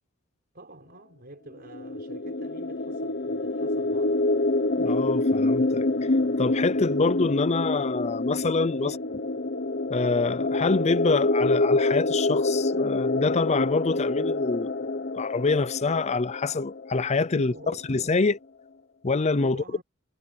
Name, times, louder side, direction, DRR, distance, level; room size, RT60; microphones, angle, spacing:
voice 1, 0.5-4.2 8.7-9.1 17.3-17.9 19.3-19.8, right 1 dB, 45° right, 5.4 m, -46 dB
sound 1, 1.7-17.3, left 2 dB, 50° left, 1.1 m, -26 dB
voice 2, 4.8-5.9 6.4-8.9 9.9-14.7 15.1-18.4 19.0-19.6, left 3 dB, 30° left, 0.5 m, -26 dB
head